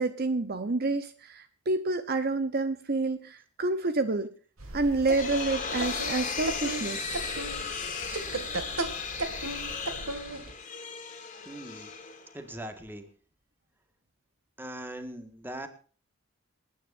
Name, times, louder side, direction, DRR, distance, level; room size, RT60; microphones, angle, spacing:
voice 1, 0.0-4.3 4.7-7.1, right 3 dB, 50° right, 10 dB, 0.9 m, -28 dB
sound 1, 4.6-10.5, right 2 dB, 85° right, 2.2 m, -36 dB
sound 2, 4.7-12.6, left 5 dB, 35° left, 2.5 m, -36 dB
voice 2, 11.4-11.9 12.3-13.1 14.6-15.7, right 1 dB, 10° right, 7 dB, 1.8 m, -40 dB
27.5 x 9.8 x 2.6 m, 0.39 s
head